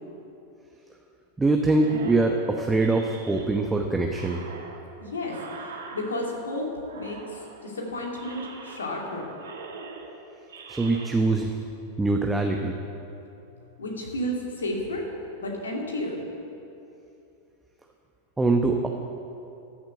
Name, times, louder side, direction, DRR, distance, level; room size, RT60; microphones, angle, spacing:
voice 1, 1.4-4.4 10.7-11.5 12.0-12.8 18.4-18.9, right 2 dB, 10° right, 2 dB, 0.9 m, -23 dB
sound 1, 1.7-3.7 4.1-6.5 6.8-7.7 8.1-9.1 9.4-11.1, right 4 dB, 65° right, 1.7 m, -43 dB
voice 2, 5.0-6.7 6.9-9.3 13.8-15.1 15.4-16.2, left 1 dB, 70° left, -1 dB, 2.6 m, -32 dB
13.5 x 7.6 x 8.5 m, 2.8 s
figure-of-eight pair, 90°, 0 cm